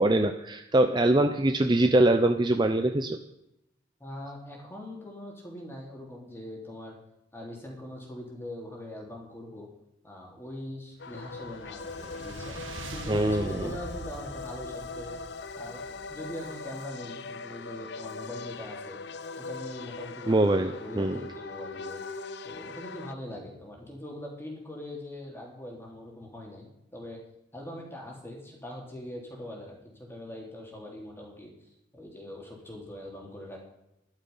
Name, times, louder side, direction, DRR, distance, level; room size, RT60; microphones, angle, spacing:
voice 1, 0.0-3.2 13.1-13.7 20.3-21.2, right 1 dB, 25° right, 7 dB, 0.6 m, -23 dB
voice 2, 4.0-6.9 7.3-9.7 10.0-12.6 12.9-15.2 15.6-19.0 19.4-22.0 22.4-27.2 27.5-31.5 31.9-33.6, left 1 dB, 10° left, -1 dB, 3.3 m, -42 dB
sound 1, 11.0-23.1, left 4 dB, 60° left, 0.6 m, -40 dB
sound 2, 11.0-16.5, right 2 dB, 85° right, 1.6 m, -43 dB
12.5 x 11.5 x 5.6 m, 0.84 s
head